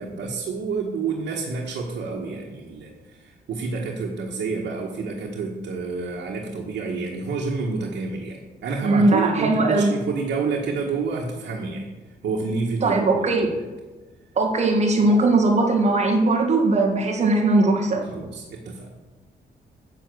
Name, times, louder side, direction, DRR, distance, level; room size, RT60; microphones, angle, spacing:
voice 1, 0.0-11.9 12.2-13.6 15.0-15.1 18.0-18.9, right 4 dB, 80° right, -2 dB, 1.6 m, -29 dB
voice 2, 8.8-9.9 12.8-13.5 14.4-18.0, right 2 dB, 40° right, 0 dB, 1.9 m, -19 dB
10.5 x 5.9 x 7.9 m, 1.2 s
wide cardioid pair, 180°, 18 cm